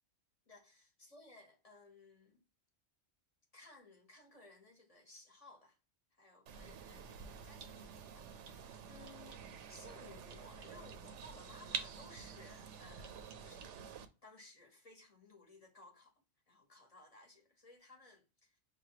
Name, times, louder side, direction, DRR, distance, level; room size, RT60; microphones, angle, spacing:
voice 1, 0.5-2.4 3.5-5.8 6.1-13.7 14.2-18.6, left 2 dB, 35° left, 0.9 m, -59 dB
sound 1, 6.5-14.1, right 6 dB, 75° right, 0.9 m, -48 dB
6.1 x 2.2 x 2.8 m
omnidirectional pair, 1.2 m